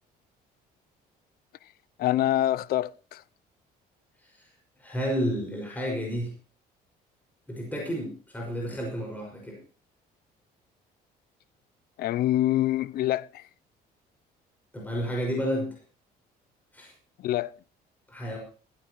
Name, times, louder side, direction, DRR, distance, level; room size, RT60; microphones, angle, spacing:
voice 1, 2.0-3.2 12.0-13.4 17.2-17.5, left 14 dB, 65° left, 0.5 m, -25 dB
voice 2, 4.2-4.5 4.8-6.3 7.5-9.6 14.7-15.8 16.7-16.9 18.1-18.4, equal, 10° left, 5.7 m, -31 dB
16.0 x 15.5 x 3.0 m
cardioid pair, 110°, 17 cm